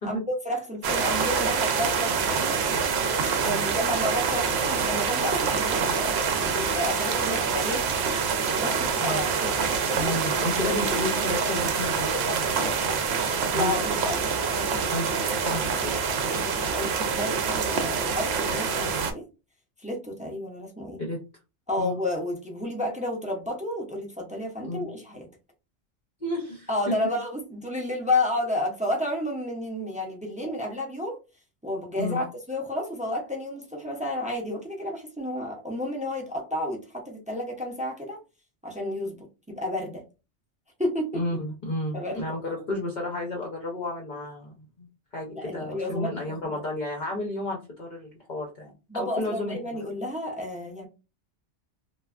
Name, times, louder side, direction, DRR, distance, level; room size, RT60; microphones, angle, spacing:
voice 1, 0.0-3.0 3.4-6.2 6.5-7.9 8.4-10.2 10.6-10.8 13.5-14.9 16.3-19.2 19.8-21.0 21.7-25.3 26.7-31.2 31.6-38.2 38.6-40.0 40.8-41.2 41.9-42.4 45.3-46.1 48.9-50.9, left 1 dB, 15° right, 0.3 m, -31 dB
sound 1, 0.8-19.1, right 5 dB, 70° right, 0.8 m, -26 dB
voice 2, 8.8-9.2 9.9-13.2 13.5-13.7 14.9-15.9 21.0-21.2 21.8-22.0 24.6-24.9 26.2-26.9 30.4-30.5 32.0-32.2 41.1-44.5 44.8-44.9 45.1-49.6, left 1 dB, 50° left, 0.7 m, -32 dB
3.2 x 2.2 x 2.3 m
omnidirectional pair, 1.2 m